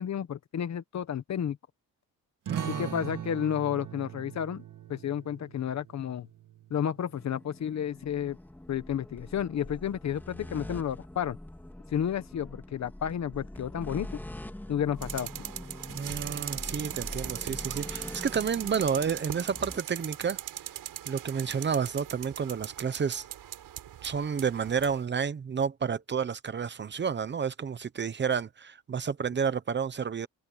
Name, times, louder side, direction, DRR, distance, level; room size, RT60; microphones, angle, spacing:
voice 1, 0.0-1.6 2.7-4.6 4.9-6.3 6.7-8.4 8.7-11.4 11.9-14.2 14.7-15.3, left 9 dB, 50° left, 1.3 m, -31 dB
sound 1, 2.4-7.6, right 10 dB, 65° right, 1.9 m, -41 dB
voice 2, 2.5-2.9 15.9-20.4 21.1-23.3 24.0-30.3, right 6 dB, 30° right, 0.9 m, -30 dB
sound 2, 7.1-19.8, left 1 dB, 5° left, 2.6 m, -44 dB
Spinning bicycle wheel, 15.0-25.0, right 11 dB, 90° right, 7.5 m, -39 dB
wide cardioid pair, 165°, 34 cm